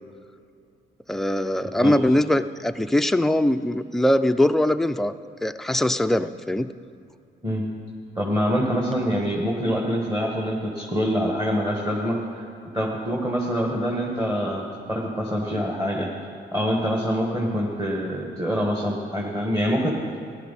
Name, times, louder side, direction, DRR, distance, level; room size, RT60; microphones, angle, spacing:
voice 1, 1.1-5.1 5.4-6.7, left 1 dB, ahead, 9 dB, 0.4 m, -21 dB
voice 2, 8.1-12.5 12.7-14.6 14.9-16.1 16.5-20.0, equal, 15° right, -2 dB, 1.6 m, -25 dB
15.0 x 11.0 x 4.2 m, 2.5 s
cardioid pair, 90°, 20 cm